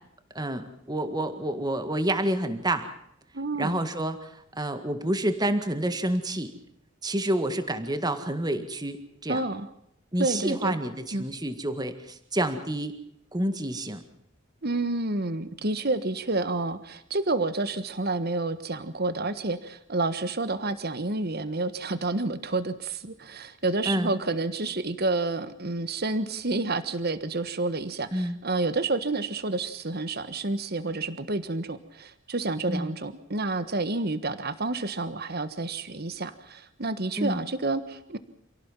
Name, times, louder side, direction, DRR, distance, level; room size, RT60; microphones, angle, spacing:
voice 1, 0.4-2.9 3.6-6.5 7.0-9.4 10.1-12.9 13.3-14.0 23.9-24.1 28.1-28.4 32.7-32.9 37.2-37.4, right 1 dB, 20° right, 9 dB, 1.9 m, -28 dB
voice 2, 3.3-3.8 9.3-9.7 10.2-10.8 11.1-11.3 14.6-38.2, right 2 dB, 50° right, 12 dB, 1.4 m, -29 dB
28.0 x 17.5 x 7.4 m, 0.75 s
head